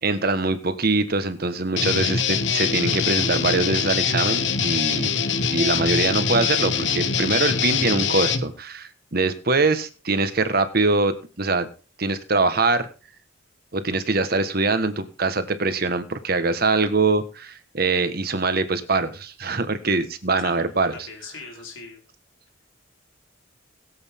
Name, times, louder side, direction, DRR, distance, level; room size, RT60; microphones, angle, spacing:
voice 1, 0.0-5.2 5.5-11.7 12.0-12.9 13.7-20.9, right 3 dB, 50° right, 10 dB, 1.4 m, -23 dB
Guitar, 1.7-8.5, left 6 dB, 65° left, 1.1 m, -23 dB
voice 2, 20.9-22.0, left 4 dB, 85° left, 1 dB, 4.4 m, -40 dB
21.0 x 8.1 x 3.6 m, 0.35 s
head